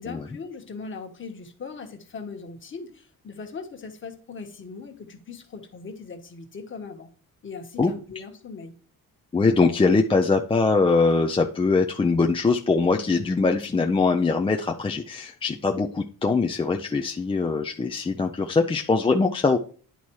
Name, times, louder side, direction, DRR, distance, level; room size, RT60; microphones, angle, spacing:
voice 1, 0.0-7.1 7.4-8.7, left 4 dB, 35° left, 4 dB, 1.4 m, -39 dB
voice 2, 9.3-19.6, left 4 dB, 15° left, 2 dB, 0.4 m, -22 dB
10.5 x 4.2 x 4.6 m, 0.41 s
wide cardioid pair, 180°, 35 cm